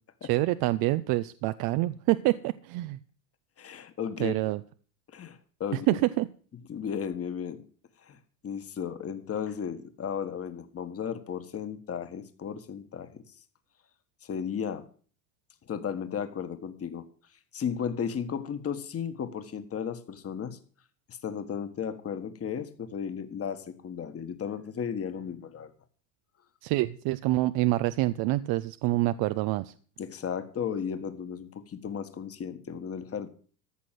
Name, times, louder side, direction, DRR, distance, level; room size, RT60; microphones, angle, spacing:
voice 1, 0.2-3.0 4.2-4.6 5.7-6.3 26.6-29.7, right 18 dB, 50° right, 13 dB, 0.6 m, -26 dB
voice 2, 3.6-4.3 5.1-6.0 6.7-7.6 8.0-8.2 8.4-13.2 14.2-14.8 15.7-17.0 17.5-20.6 21.1-25.7 30.0-33.3, left 7 dB, 30° left, 10 dB, 1.6 m, -34 dB
14.0 x 6.2 x 7.6 m, 0.43 s
hypercardioid pair, 95°, 49 cm